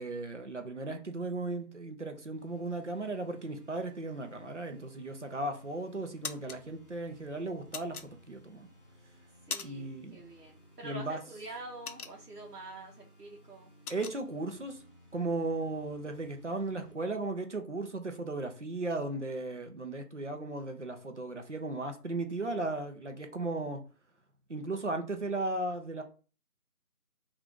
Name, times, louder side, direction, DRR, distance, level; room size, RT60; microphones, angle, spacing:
voice 1, 0.0-8.7 9.6-10.2 10.8-11.2 13.9-14.8 15.1-23.8 24.5-26.0, right 2 dB, 50° right, 5 dB, 0.5 m, -36 dB
sound 1, 2.3-17.0, right 1 dB, 35° left, 0.8 m, -58 dB
sound 2, 5.2-5.6 6.0-6.6 7.7-8.6 9.0-10.0 10.3-10.5 10.9-12.6 13.0-13.1 13.4-14.2, left 6 dB, 70° left, 0.5 m, -41 dB
voice 2, 9.5-13.7, right 2 dB, 85° right, -2 dB, 0.8 m, -46 dB
2.7 x 2.4 x 3.6 m, 0.37 s
figure-of-eight pair, 170°, 46 cm